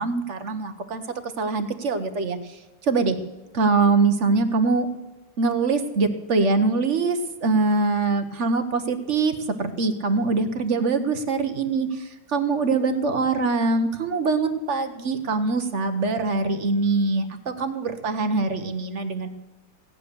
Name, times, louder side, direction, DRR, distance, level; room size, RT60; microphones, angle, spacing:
voice 1, 0.0-1.0 1.4-3.2 3.5-4.9 5.4-19.3, right 3 dB, 50° right, 9 dB, 0.9 m, -23 dB
16.5 x 9.6 x 6.8 m, 1.1 s
omnidirectional pair, 2.3 m